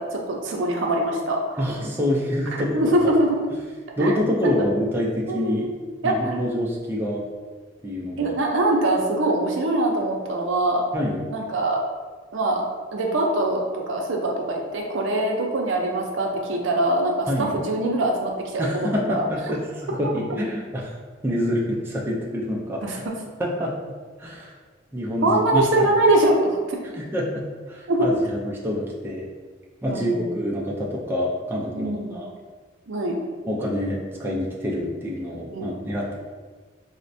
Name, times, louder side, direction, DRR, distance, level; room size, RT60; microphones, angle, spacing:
voice 1, 0.0-1.6 2.7-3.4 4.0-4.1 4.4-4.5 5.3-6.4 8.2-10.8 11.3-11.8 12.3-12.7 12.9-19.3 20.4-20.5 22.8-23.0 25.2-26.8 27.9-28.1 29.9-30.3 31.7-32.2 32.9-33.2 35.5-35.8, right 1 dB, 70° right, 0 dB, 0.5 m, -23 dB
voice 2, 1.6-2.9 4.0-5.7 6.0-7.2 7.8-8.3 10.9-11.2 17.3-17.6 18.6-19.6 19.9-21.0 21.2-23.0 23.4-23.7 24.2-24.5 24.9-25.9 27.0-28.4 28.6-29.3 29.8-32.3 33.5-36.1, equal, 10° right, -4 dB, 0.4 m, -26 dB
4.2 x 2.1 x 2.6 m, 1.4 s
head